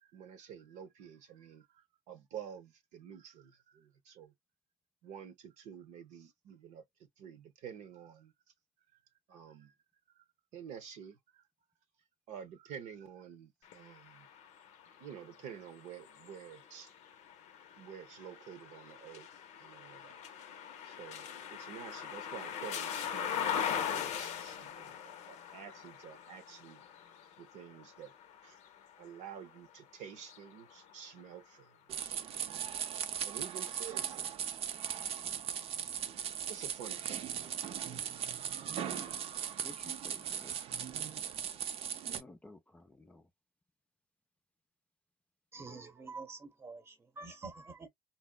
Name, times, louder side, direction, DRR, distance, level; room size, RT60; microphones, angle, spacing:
voice 1, 0.0-4.3 5.0-6.8 7.2-8.3 8.9-9.0 9.3-9.7 10.2-10.3 10.5-11.4 12.3-14.3 15.0-16.9 17.7-20.2 20.8-26.8 27.4-28.1 28.4-28.6 29.0-32.2 33.2-34.3 36.5-37.3, right 8 dB, 75° right, 0.8 m, -50 dB
sound 1, 13.6-29.6 30.1-31.4, left 8 dB, 70° left, 0.6 m, -41 dB
sound 2, 31.9-42.2, right 9 dB, 55° right, 0.5 m, -38 dB
voice 2, 38.9-39.2 39.6-40.5 42.1-43.3, left 2 dB, 10° left, 0.4 m, -54 dB
voice 3, 45.5-47.9, right 3 dB, 20° right, 0.8 m, -47 dB
4.1 x 2.0 x 2.2 m
cardioid pair, 115°, 12 cm